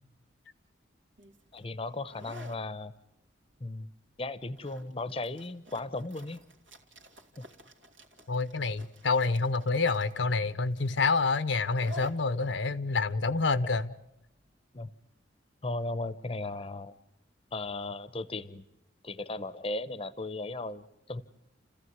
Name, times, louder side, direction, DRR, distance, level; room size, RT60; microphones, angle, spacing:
sound 1, 1.2-14.6, equal, 80° right, 2.7 m, -52 dB
voice 1, 1.5-2.9 3.6-3.9 4.2-6.4 7.4-7.5 14.7-14.9 15.6-16.9 17.5-18.6 19.0-21.2, left 2 dB, 30° left, 15 dB, 0.8 m, -36 dB
voice 2, 8.3-13.9, left 4 dB, 70° left, 13 dB, 0.8 m, -28 dB
30.0 x 15.0 x 9.5 m, 0.88 s
head